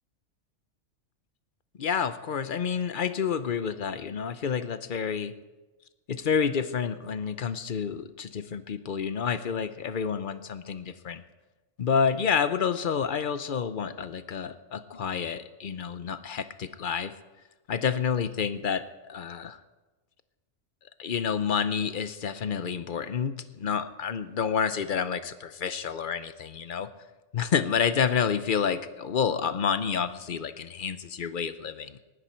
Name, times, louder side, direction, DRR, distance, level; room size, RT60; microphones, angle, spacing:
voice 1, 1.8-5.3 6.1-11.2 11.8-17.1 17.7-18.8 19.1-19.6 21.0-26.9 27.3-32.0, left 6 dB, 50° left, 12 dB, 0.8 m, -29 dB
19.5 x 11.0 x 4.4 m, 1.1 s
omnidirectional pair, 1.3 m